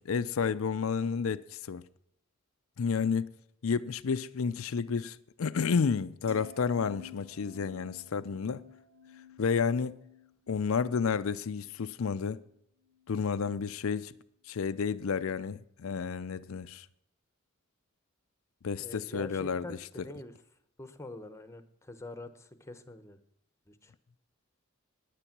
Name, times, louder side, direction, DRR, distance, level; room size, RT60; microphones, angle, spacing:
voice 1, 0.0-1.8 2.8-3.3 3.6-8.6 9.4-10.0 10.5-12.4 13.1-14.1 14.5-16.9 18.6-19.8, left 5 dB, 70° left, 0.5 m, -31 dB
sound 1, 6.3-12.6 12.9-13.2, left 6 dB, 70° right, 1.3 m, -52 dB
voice 2, 18.8-20.3 20.8-23.2 23.7-23.9, left 2 dB, 15° left, 0.9 m, -45 dB
10.0 x 10.0 x 5.9 m
head